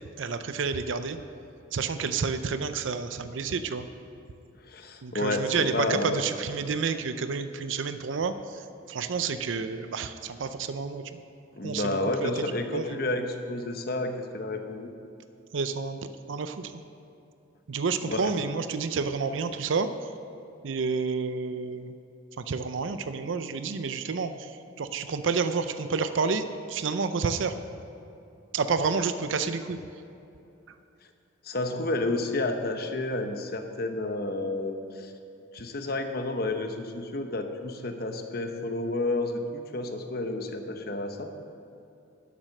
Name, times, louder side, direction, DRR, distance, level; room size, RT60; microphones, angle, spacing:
voice 1, 0.2-1.2 1.7-3.9 5.0-8.3 8.9-11.0 11.6-12.3 12.7-13.1 15.5-16.0 16.3-16.7 17.7-19.9 20.6-21.9 22.4-24.3 24.8-27.5 28.5-29.8, right 5 dB, 70° right, 10 dB, 0.5 m, -29 dB
voice 2, 4.7-6.3 11.5-14.9 18.0-18.3 31.4-35.1 35.5-41.3, left 2 dB, 50° left, 6 dB, 0.9 m, -30 dB
11.5 x 7.5 x 6.5 m, 2.8 s
head